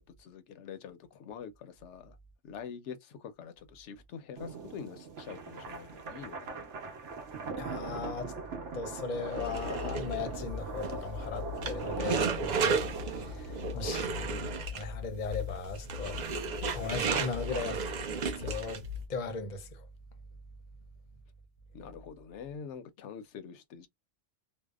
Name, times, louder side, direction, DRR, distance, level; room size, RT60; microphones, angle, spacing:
voice 1, 0.0-2.2 2.4-6.6 21.7-23.9, left 7 dB, 80° left, 0.9 m, -45 dB
sound 1, 4.4-14.5, right 4 dB, 80° right, 1.0 m, -41 dB
voice 2, 7.6-8.3 8.7-16.2 16.7-18.0 18.4-19.9, left 4 dB, 50° left, 0.7 m, -38 dB
sound 2, 9.3-19.0, right 3 dB, 60° right, 0.5 m, -34 dB
2.6 x 2.0 x 2.2 m
omnidirectional pair, 1.2 m